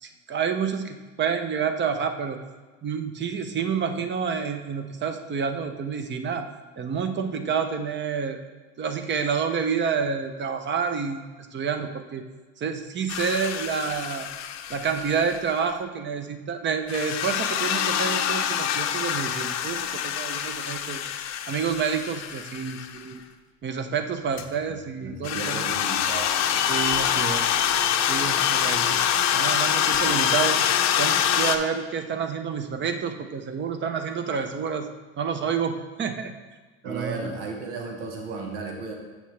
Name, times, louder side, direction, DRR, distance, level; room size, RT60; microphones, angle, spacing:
voice 1, 0.0-2.4 2.8-8.4 8.8-11.2 11.5-12.2 12.6-14.3 14.7-21.1 21.5-23.2 23.6-25.6 26.7-27.6 28.1-29.0 29.3-30.7 31.0-34.9 35.2-36.3 36.8-37.3, right 6 dB, 35° right, 8 dB, 0.8 m, -29 dB
sound 1, 13.1-15.6 16.9-23.0 24.4-24.5 25.2-31.6, left 9 dB, 50° left, 0.7 m, -25 dB
voice 2, 25.0-26.3 36.8-38.9, right 4 dB, 85° right, 2 dB, 1.4 m, -34 dB
7.7 x 6.2 x 3.3 m, 1.3 s
supercardioid pair, 95°, 34 cm